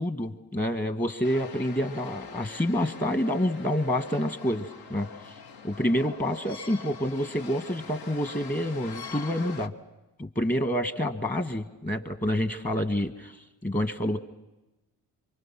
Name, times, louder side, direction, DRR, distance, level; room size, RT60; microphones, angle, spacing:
voice 1, 0.0-5.4 5.6-9.7 10.2-14.2, equal, 20° left, 8 dB, 1.8 m, -28 dB
sound 1, 1.2-9.7, left 5 dB, 65° left, 1.2 m, -44 dB
25.5 x 24.0 x 6.1 m, 1.0 s
supercardioid pair, 60°, 38 cm